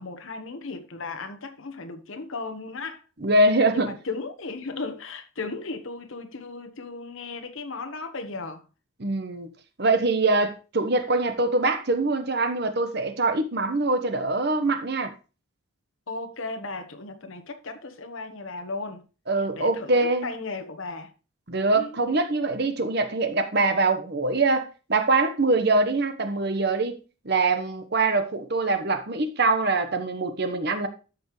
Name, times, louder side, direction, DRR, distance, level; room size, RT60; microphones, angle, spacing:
voice 1, 0.0-3.0 3.7-8.6 16.1-19.0 19.5-19.9 20.2-21.1 21.7-22.0, left 3 dB, 75° left, 1.2 m, -35 dB
voice 2, 3.2-3.9 9.0-9.5 9.8-15.1 19.3-20.3 21.5-27.0 27.2-30.9, right 2 dB, 50° right, 1.1 m, -23 dB
13.5 x 5.3 x 3.1 m
head